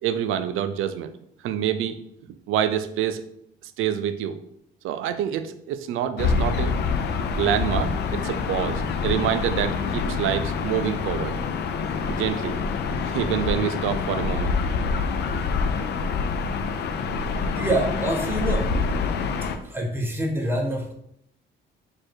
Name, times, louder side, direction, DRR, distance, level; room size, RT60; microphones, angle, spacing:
voice 1, 0.0-1.1 1.4-2.0 2.5-3.2 3.6-4.4 4.8-6.8 7.3-11.3 12.1-12.6 13.0-14.5, right 10 dB, 85° right, 10 dB, 0.4 m, -26 dB
Gull seagull / Ocean, 6.2-19.6, left 5 dB, 55° left, 0.4 m, -26 dB
voice 2, 17.5-18.7 19.6-20.9, right 1 dB, 10° right, 1 dB, 0.8 m, -26 dB
4.4 x 2.5 x 4.5 m, 0.73 s
cardioid pair, 130°, 20 cm